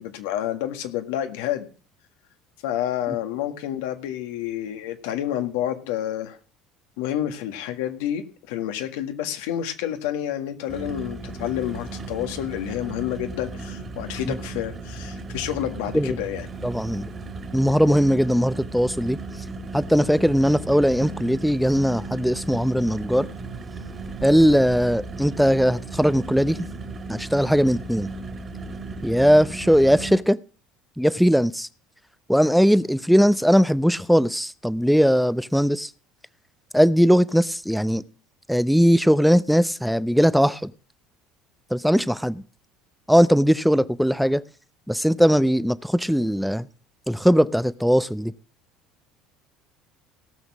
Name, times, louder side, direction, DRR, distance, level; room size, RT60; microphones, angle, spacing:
voice 1, 0.0-1.7 2.6-6.4 7.0-16.5, left 11 dB, 85° left, 1.8 m, -29 dB
sound 1, 10.7-30.1, right 3 dB, 30° right, 2.7 m, -35 dB
voice 2, 16.6-17.1 17.5-19.2 19.7-23.3 24.2-26.6 27.1-28.1 29.0-30.4 31.0-31.7 32.3-35.9 36.7-38.0 38.5-40.7 41.7-42.4 43.1-44.4 44.9-46.7 47.1-48.3, equal, ahead, 0.7 m, -19 dB
17.5 x 6.4 x 6.1 m
supercardioid pair, 95°, 0 cm